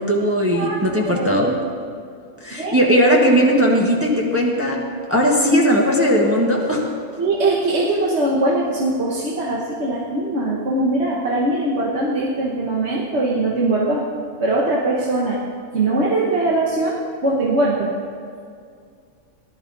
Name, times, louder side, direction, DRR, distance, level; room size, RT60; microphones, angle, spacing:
voice 1, 0.0-1.6 2.4-4.8 5.1-6.9, equal, 10° right, -2 dB, 1.4 m, -18 dB
voice 2, 1.0-1.4 2.5-2.8 7.2-14.0 14.4-15.4 15.7-17.9, right 2 dB, 55° right, -4 dB, 1.6 m, -21 dB
18.0 x 12.0 x 4.0 m, 2.2 s
omnidirectional pair, 1.4 m